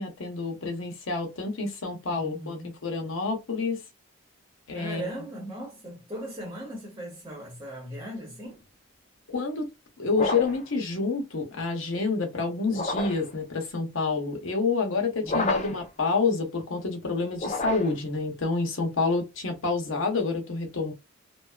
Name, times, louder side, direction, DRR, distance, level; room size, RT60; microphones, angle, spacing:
voice 1, 0.0-2.6 2.8-3.8 4.7-5.1 9.3-9.7 10.0-20.9, left 4 dB, 70° left, 0.8 m, -28 dB
voice 2, 2.1-2.7 4.7-8.6 15.2-15.7, right 1 dB, 15° right, 1.0 m, -38 dB
sound 1, 10.1-10.7 12.7-13.3 15.2-15.9 17.3-18.1, left 2 dB, 35° left, 0.5 m, -30 dB
2.5 x 2.3 x 2.3 m
head